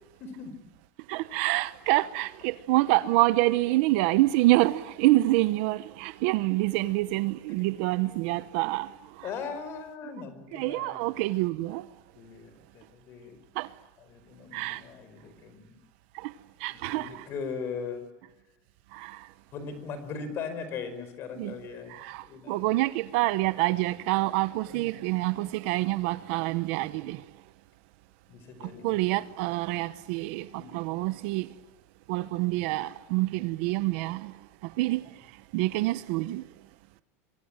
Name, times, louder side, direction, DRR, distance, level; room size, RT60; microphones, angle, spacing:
voice 1, 0.2-0.5 9.2-11.2 12.1-13.4 14.1-15.8 16.8-18.0 19.5-21.9 22.2-22.7 24.7-24.9 28.3-29.1 30.5-30.8, left 5 dB, 35° left, 4.9 m, -39 dB
voice 2, 1.1-9.3 10.5-11.9 13.5-13.7 14.5-14.8 16.1-16.3 16.6-17.3 18.9-19.3 21.4-21.6 21.9-27.2 28.6-31.5 32.1-34.3 34.6-35.1 35.5-36.4, right 19 dB, 55° right, 1.0 m, -27 dB
26.5 x 24.0 x 8.9 m
cardioid pair, 175°, 7 cm